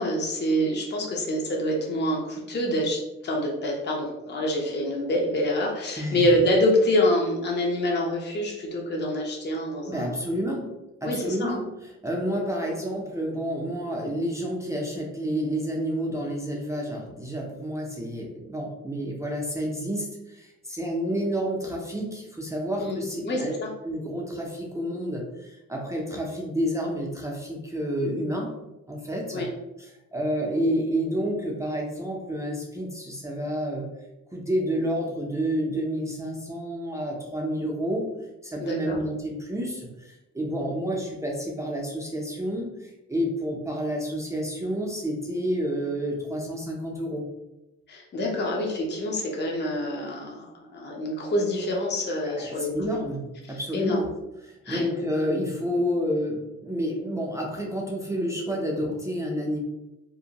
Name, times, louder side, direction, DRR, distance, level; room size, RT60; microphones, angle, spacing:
voice 1, 0.0-10.1 11.0-11.6 22.8-23.7 29.3-29.5 38.6-39.0 47.9-50.5 50.7-53.0 53.5-54.1 54.6-54.8, left 1 dB, 35° left, -1 dB, 0.6 m, -26 dB
voice 2, 9.9-10.7 11.0-23.5 23.8-28.5 28.9-29.5 29.8-33.9 34.3-38.1 38.4-47.2 52.2-53.2 53.5-54.1 54.4-59.6, equal, 10° right, -2 dB, 0.4 m, -29 dB
2.6 x 2.1 x 2.7 m, 0.96 s
cardioid pair, 90°, 30 cm